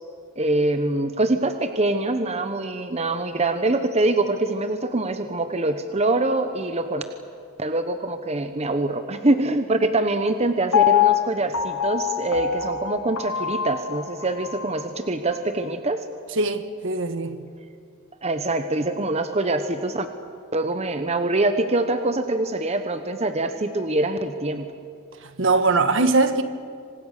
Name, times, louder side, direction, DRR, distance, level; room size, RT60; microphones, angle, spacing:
voice 1, 0.4-7.0 7.6-16.1 18.2-20.1 20.5-24.7, right 2 dB, 30° right, 1.0 m, -24 dB
Piano, 10.7-14.8 15.3-15.4, left 10 dB, 85° left, 1.1 m, -24 dB
voice 2, 16.4-17.4 25.2-26.4, right 3 dB, 60° right, 1.6 m, -21 dB
27.5 x 25.5 x 6.7 m
head